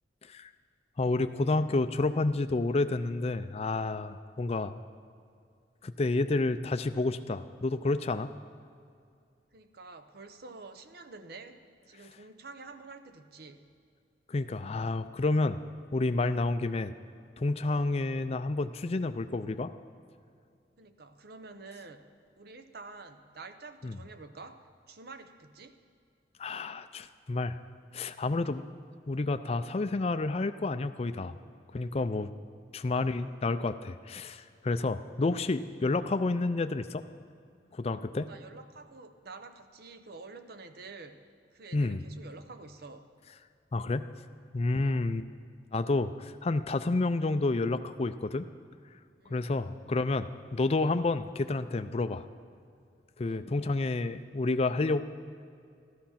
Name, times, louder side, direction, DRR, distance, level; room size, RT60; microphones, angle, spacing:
voice 1, 1.0-4.8 5.8-8.3 14.3-15.6 15.9-16.9 17.4-19.7 23.8-24.0 26.4-27.6 27.9-28.6 29.1-31.4 31.7-32.3 32.7-37.0 37.7-38.3 41.7-42.0 43.7-44.1 44.5-45.3 45.7-48.4 49.3-52.2 53.2-55.0, left 3 dB, 35° left, 10 dB, 0.4 m, -30 dB
voice 2, 9.5-11.6 11.9-13.6 17.6-17.8 20.8-22.1 22.4-25.8 28.5-28.6 31.6-31.9 38.1-41.2 41.5-43.1 44.7-45.0 49.2-49.4 53.2-53.5, right 3 dB, 60° right, 9 dB, 0.8 m, -48 dB
13.5 x 12.5 x 5.8 m, 2.3 s
head